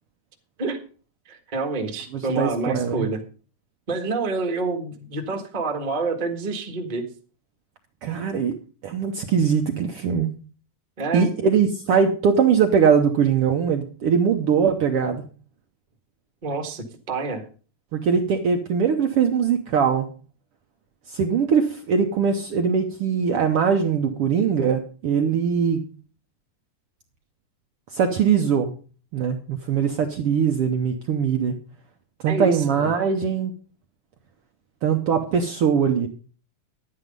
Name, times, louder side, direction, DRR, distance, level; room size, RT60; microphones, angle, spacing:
voice 1, 1.2-3.2 3.9-7.0 11.0-11.3 16.4-17.4 32.2-32.9, right 3 dB, 25° right, 4 dB, 1.1 m, -27 dB
voice 2, 2.3-3.1 8.0-8.6 8.8-10.3 11.1-15.2 17.9-20.1 21.1-25.8 27.9-28.7 29.1-31.6 32.2-33.5 34.8-36.1, right 6 dB, 65° right, 5 dB, 1.5 m, -21 dB
11.0 x 9.6 x 5.2 m, 0.38 s
omnidirectional pair, 3.4 m